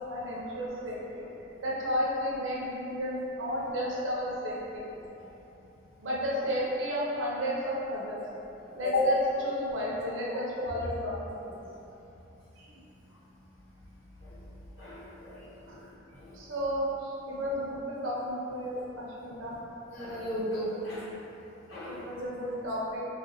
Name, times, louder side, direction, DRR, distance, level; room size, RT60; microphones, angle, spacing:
voice 1, 0.1-1.2 1.6-4.8 6.0-8.2 8.7-11.1 11.4-11.6 12.6-12.7 15.7-15.8 16.3-19.6 20.7-20.8 21.9-23.0, equal, 80° right, -5 dB, 0.7 m, -33 dB
voice 2, 14.8-15.4 16.2-16.3 19.9-21.0 21.7-22.0, left 2 dB, 70° left, -10 dB, 0.9 m, -33 dB
3.4 x 2.4 x 2.7 m, 2.9 s
head